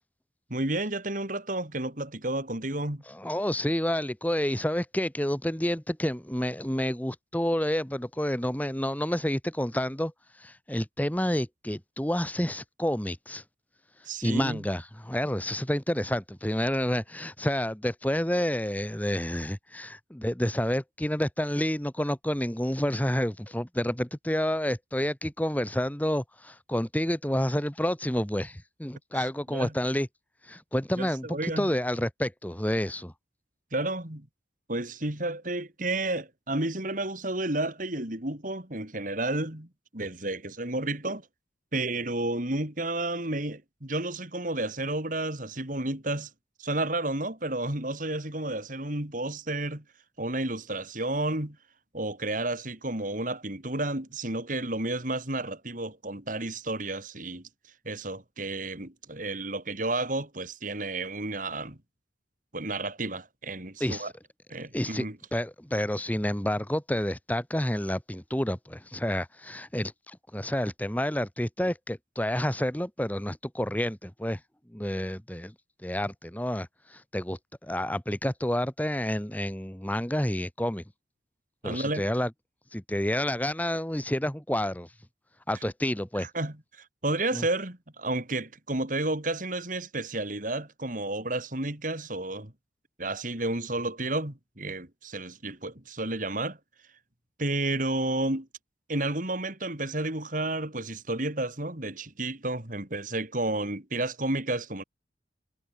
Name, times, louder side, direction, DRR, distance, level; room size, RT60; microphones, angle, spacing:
voice 1, 0.5-3.0 14.1-14.6 29.1-29.7 31.0-31.7 33.7-34.3 34.7-41.3 41.7-46.3 46.6-49.8 50.2-51.6 51.9-57.5 57.9-61.8 62.5-64.1 64.5-65.2 81.6-82.1 86.2-92.5 93.0-96.6 97.4-98.5 98.9-104.8, right 2 dB, 45° right, 3.6 m, -31 dB
voice 2, 3.1-13.4 14.2-30.1 30.4-33.1 63.8-64.1 64.7-65.0 65.3-74.4 74.7-75.5 75.8-80.8 81.6-82.3 82.7-84.9 85.5-86.3 87.3-87.4, equal, 10° left, 1.5 m, -29 dB
head